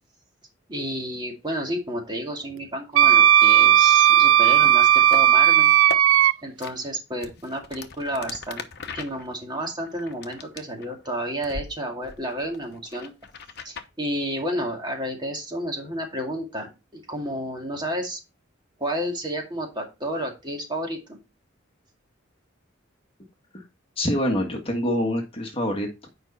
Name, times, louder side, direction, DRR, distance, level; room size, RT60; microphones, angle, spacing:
voice 1, 0.7-5.7 6.4-13.1 13.6-18.2 18.8-21.2, equal, 20° right, 1 dB, 2.2 m, -31 dB
Wind instrument woodwind instrument, 3.0-6.3, right 11 dB, 85° right, 0.3 m, -15 dB
sound 1, 5.0-5.2 5.7-6.0 6.6-6.7 7.2-11.1 11.4-11.7 12.0-13.9, left 4 dB, 55° left, 1.0 m, -38 dB
voice 2, 24.0-26.1, equal, 30° left, 2 dB, 1.6 m, -26 dB
9.5 x 5.4 x 4.1 m, 0.26 s
head